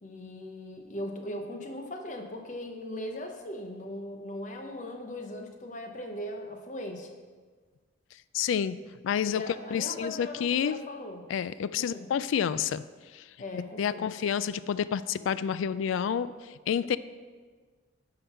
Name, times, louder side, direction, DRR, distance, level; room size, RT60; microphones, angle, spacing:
voice 1, 0.0-7.1 9.2-11.2 11.8-12.1 13.4-14.1, left 1 dB, 40° left, 4 dB, 0.8 m, -39 dB
voice 2, 8.3-8.8 9.0-9.4 9.7-10.8 11.3-12.8 13.1-13.2 13.8-16.3 16.7-17.0, left 8 dB, 90° left, 16 dB, 0.3 m, -29 dB
9.9 x 3.9 x 5.6 m, 1.5 s
head